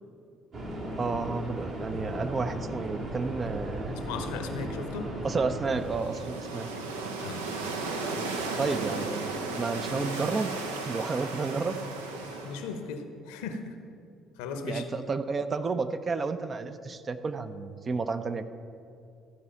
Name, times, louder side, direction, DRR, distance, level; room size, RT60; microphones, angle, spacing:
sound 1, 0.5-6.0, equal, 55° right, 2.3 m, -36 dB
voice 1, 1.0-3.9 5.2-6.7 8.6-10.6 10.9-11.8 14.7-18.4, right 4 dB, 35° right, 10 dB, 0.5 m, -31 dB
voice 2, 3.9-5.1 7.2-7.4 12.2-13.8 14.4-14.8, left 5 dB, 75° left, 7 dB, 0.8 m, -37 dB
sound 2, 5.7-12.8, right 3 dB, 80° right, 0.7 m, -35 dB
13.5 x 4.9 x 5.6 m, 2.5 s
hypercardioid pair, 55°, 0 cm